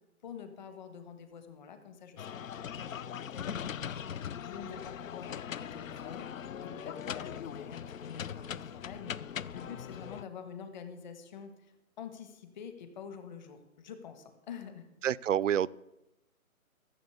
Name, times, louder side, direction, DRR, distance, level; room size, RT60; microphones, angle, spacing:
voice 1, 0.2-4.0 4.4-14.9, left 7 dB, 30° left, 8 dB, 1.6 m, -47 dB
sound 1, 2.2-10.2, left 8 dB, 65° left, 0.6 m, -40 dB
voice 2, 15.0-15.7, right 10 dB, 60° right, 19 dB, 0.5 m, -27 dB
14.5 x 7.4 x 8.2 m, 0.95 s
hypercardioid pair, 160°, 43 cm